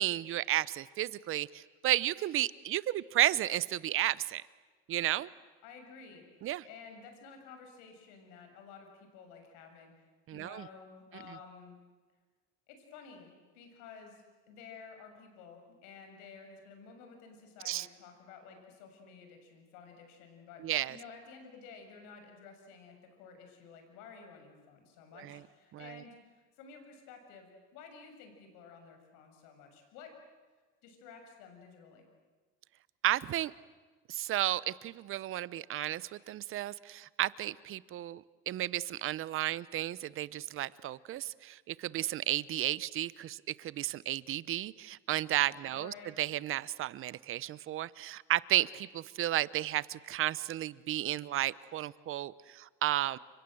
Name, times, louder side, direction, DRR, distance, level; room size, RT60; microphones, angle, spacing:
voice 1, 0.0-4.4 4.9-5.3 6.4-6.7 10.3-10.7 17.6-17.9 20.6-21.0 25.2-25.4 25.7-26.0 33.0-33.5 34.1-53.2, right 13 dB, 45° right, 20 dB, 0.9 m, -33 dB
voice 2, 5.6-6.2 6.6-9.9 10.3-11.8 12.7-14.2 14.5-30.1 30.8-32.0 45.7-46.1, left 5 dB, 80° left, 5 dB, 6.8 m, -52 dB
29.5 x 25.5 x 7.9 m, 1.4 s
cardioid pair, 120°, 30 cm